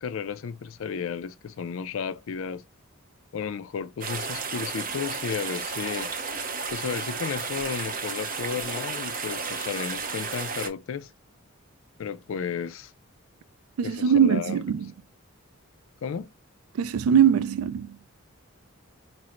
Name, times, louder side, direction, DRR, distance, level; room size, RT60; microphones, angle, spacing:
voice 1, 0.0-2.6 3.3-6.1 6.7-11.1 12.0-12.9 13.8-14.6 16.0-16.3, left 6 dB, 70° left, 0.4 m, -33 dB
sound 1, 4.0-10.7, right 4 dB, 40° right, 0.7 m, -33 dB
voice 2, 13.8-14.9 16.7-18.0, right 8 dB, 85° right, 0.3 m, -22 dB
5.7 x 2.0 x 2.4 m
head